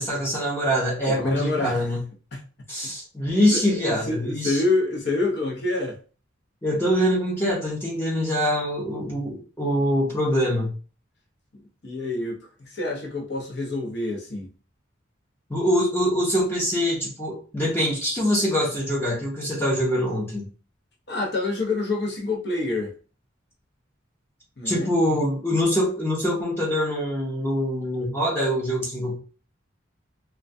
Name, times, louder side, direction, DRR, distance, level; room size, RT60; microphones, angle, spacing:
voice 1, 0.0-2.0 2.7-4.6 6.6-10.7 15.5-20.5 24.6-29.2, equal, 10° left, 0.6 m, -24 dB
voice 2, 1.0-1.9 2.3-2.4 3.5-6.0 11.5-14.5 21.1-22.9 24.6-25.2, left 2 dB, 55° left, 0.7 m, -27 dB
2.2 x 2.2 x 2.5 m
head